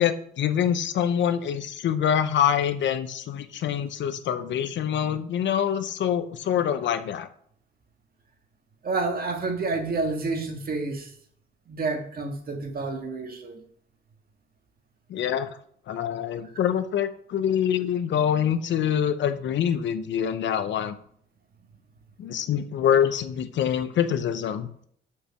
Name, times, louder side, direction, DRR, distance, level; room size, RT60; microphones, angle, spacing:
voice 1, 0.0-7.3 15.1-15.5 15.9-20.9 22.2-24.7, left 9 dB, 70° left, 0.9 m, -25 dB
voice 2, 8.8-11.1 11.7-13.6, right 3 dB, 50° right, 1.8 m, -29 dB
6.6 x 5.7 x 5.9 m
cardioid pair, 90°, 20 cm